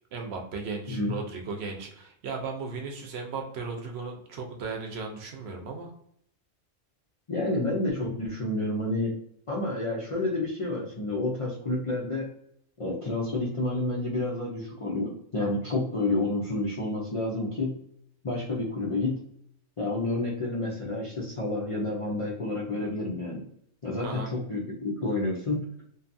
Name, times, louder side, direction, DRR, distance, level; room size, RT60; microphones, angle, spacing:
voice 1, 0.1-5.9 24.0-24.3, right 4 dB, 65° right, 2 dB, 0.7 m, -36 dB
voice 2, 7.3-9.1 9.5-12.3 12.8-17.8 18.2-19.2 19.8-23.4 23.8-25.6, left 2 dB, 60° left, -4 dB, 0.3 m, -29 dB
2.6 x 2.3 x 2.5 m, 0.71 s
omnidirectional pair, 1.3 m